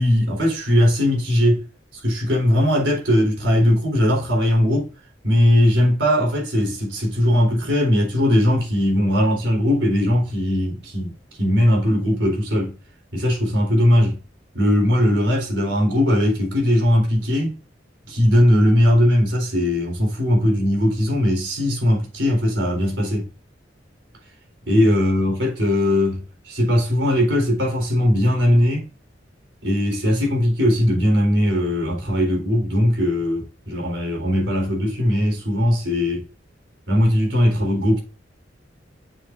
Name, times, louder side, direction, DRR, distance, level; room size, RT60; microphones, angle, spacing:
voice 1, 0.0-1.6 1.9-4.9 5.2-11.1 11.4-12.7 13.1-14.2 14.5-17.6 18.1-23.3 24.7-28.9 29.6-36.2 36.9-38.0, left 1 dB, 85° right, 3.8 m, -19 dB
7.1 x 7.0 x 2.6 m
head